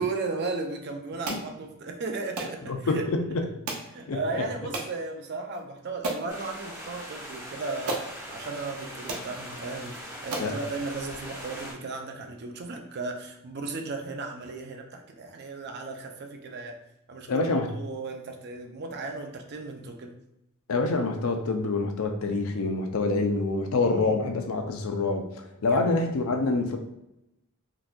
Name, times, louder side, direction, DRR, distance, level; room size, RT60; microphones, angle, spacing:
voice 1, 0.0-3.0 3.9-16.8 17.1-17.5 17.8-20.2 23.8-24.3 25.7-26.1, right 3 dB, 50° right, 4 dB, 0.5 m, -35 dB
sound 1, 1.2-1.5 2.4-2.6 3.7-3.9 4.7-4.9 5.5-5.6 6.0-6.3 7.3-7.4 7.9-8.1 8.7-8.8 9.1-9.3 9.9-10.0 10.3-10.6, right 3 dB, 85° right, 0.7 m, -33 dB
voice 2, 2.7-3.4 4.1-4.4 10.4-10.6 17.3-17.7 20.7-26.8, left 3 dB, 70° left, 4 dB, 0.5 m, -26 dB
sound 2, 6.3-11.7, equal, 10° right, 0.9 m, -41 dB
3.9 x 2.5 x 2.2 m, 0.88 s
head